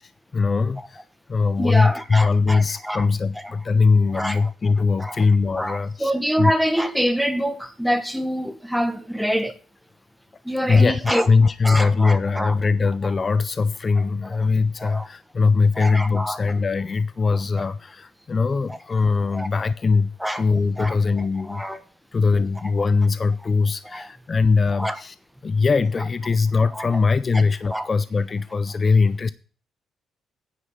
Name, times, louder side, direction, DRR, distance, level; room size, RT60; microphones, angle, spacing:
voice 1, 0.0-6.1 6.4-6.5 10.6-21.6 22.1-25.2 25.4-29.3, left 4 dB, 35° left, 0.4 m, -21 dB
voice 2, 1.6-3.0 4.1-4.5 5.0-5.2 5.6-9.6 10.4-11.3 11.6-12.5 14.8-15.1 15.8-16.4 18.7-18.8 19.3-19.5 20.2-20.4 20.8-20.9 21.5-21.8 23.9-24.1 24.7-25.0 26.8-26.9 27.7-27.9, equal, ahead, 1.3 m, -25 dB
9.7 x 5.1 x 7.8 m
cardioid pair, 90°, 0 cm